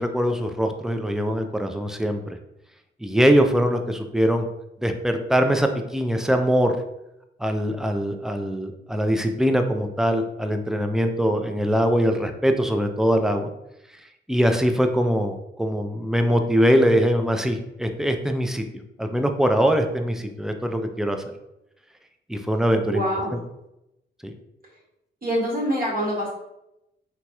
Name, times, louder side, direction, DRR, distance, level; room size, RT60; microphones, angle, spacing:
voice 1, 0.0-2.2 3.0-4.5 4.8-6.8 7.4-13.5 14.3-18.6 19.0-21.2 22.3-23.0 23.3-23.4 24.2-24.3, equal, ahead, 5 dB, 0.4 m, -22 dB
voice 2, 22.9-23.3 25.2-26.3, equal, 45° right, -4 dB, 1.2 m, -25 dB
3.1 x 2.8 x 2.2 m, 0.86 s
cardioid pair, 60°, 21 cm